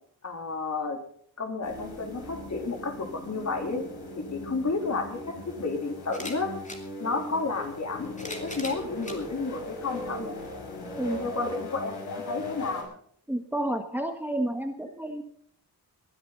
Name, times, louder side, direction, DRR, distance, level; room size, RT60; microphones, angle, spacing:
voice 1, 0.2-1.0 1.4-3.8 4.2-6.5 7.0-10.4 11.2-12.9, left 3 dB, 45° left, 4 dB, 3.6 m, -31 dB
sound 1, 1.6-12.8, left 2 dB, 90° left, 5.8 m, -39 dB
sound 2, 6.0-6.8 7.8-9.2 10.0-10.1 11.3-11.4, left 2 dB, 20° left, 3.0 m, -40 dB
voice 2, 13.3-15.2, right 1 dB, 5° right, 6 dB, 1.4 m, -30 dB
21.0 x 13.0 x 4.0 m, 0.63 s
wide cardioid pair, 120°, 38 cm